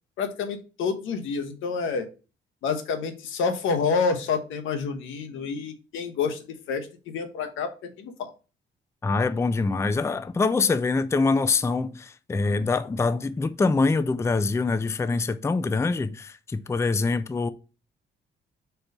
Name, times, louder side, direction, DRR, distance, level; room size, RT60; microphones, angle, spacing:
voice 1, 0.2-2.1 2.6-8.3, left 5 dB, 85° left, 1.0 m, -28 dB
voice 2, 9.0-17.5, left 3 dB, 15° left, 0.4 m, -24 dB
4.5 x 3.9 x 5.2 m
cardioid pair, 90°, 20 cm